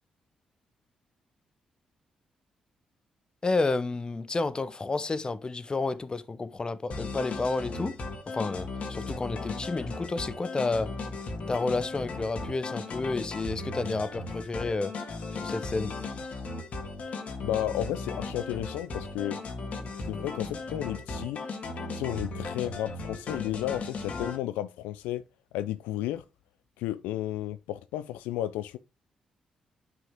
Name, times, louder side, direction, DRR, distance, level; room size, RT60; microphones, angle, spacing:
voice 1, 3.4-8.0 8.3-10.9 11.5-14.9 15.3-15.9, left 3 dB, 35° left, 0.9 m, -30 dB
sound 1, 6.9-24.4, left 3 dB, 60° left, 1.8 m, -36 dB
voice 2, 17.4-19.4 20.0-21.4 21.9-25.2 25.5-26.2 26.8-28.8, left 13 dB, 80° left, 0.3 m, -33 dB
9.2 x 6.1 x 3.6 m
hypercardioid pair, 45°, 3 cm